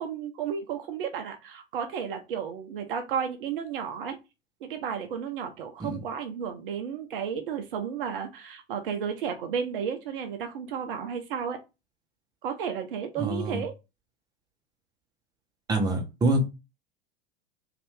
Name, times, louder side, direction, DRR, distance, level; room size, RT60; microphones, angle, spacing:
voice 1, 0.0-4.2 4.6-11.6 12.4-13.7, right 7 dB, 55° right, 6 dB, 0.6 m, -33 dB
voice 2, 13.2-13.6 15.7-16.4, right 2 dB, 10° right, 2 dB, 0.8 m, -26 dB
2.6 x 2.5 x 3.4 m, 0.26 s
figure-of-eight pair, 85°, 32 cm